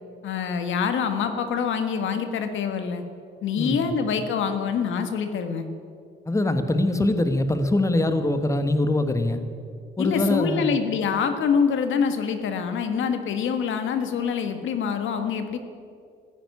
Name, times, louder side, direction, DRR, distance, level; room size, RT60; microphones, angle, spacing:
voice 1, 0.2-3.0 3.4-5.7 10.0-15.6, left 6 dB, 75° left, 8 dB, 1.5 m, -25 dB
voice 2, 3.6-3.9 6.3-9.4 10.0-10.7, left 2 dB, 15° left, 8 dB, 1.3 m, -23 dB
14.5 x 10.5 x 9.6 m, 2.3 s
cardioid pair, 90°, 20 cm